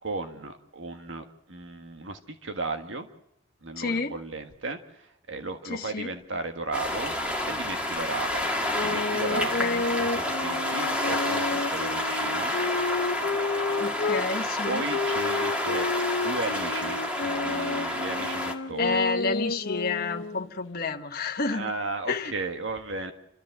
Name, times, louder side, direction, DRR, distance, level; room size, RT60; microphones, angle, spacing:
voice 1, 0.0-3.1 3.6-7.2 7.4-8.5 8.8-12.5 14.7-19.0 21.5-23.1, right 3 dB, 75° right, 6 dB, 1.6 m, -35 dB
voice 2, 3.8-4.1 5.7-6.1 9.3-9.8 13.8-14.9 18.8-21.7 22.1-22.3, left 4 dB, 50° left, 3 dB, 1.1 m, -30 dB
sound 1, 6.7-18.5, left 1 dB, 5° right, 1.9 m, -29 dB
sound 2, 8.7-14.2 14.9-20.5, left 3 dB, 70° left, 0.8 m, -30 dB
29.5 x 13.5 x 7.8 m, 0.83 s
head